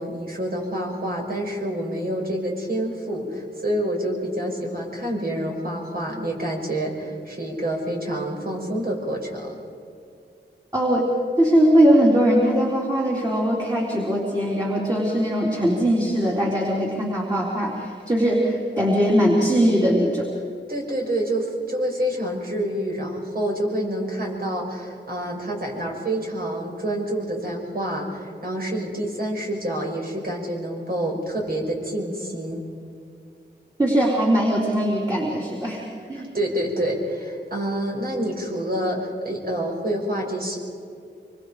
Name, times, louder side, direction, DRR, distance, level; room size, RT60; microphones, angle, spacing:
voice 1, 0.0-9.6 20.7-32.6 36.2-40.6, right 1 dB, 50° right, -1 dB, 5.9 m, -27 dB
voice 2, 10.7-11.1 11.4-20.3 33.8-35.8 36.1-36.3, equal, 20° right, -4 dB, 4.0 m, -20 dB
26.0 x 24.5 x 5.0 m, 2.4 s
wide cardioid pair, 100°, 19 cm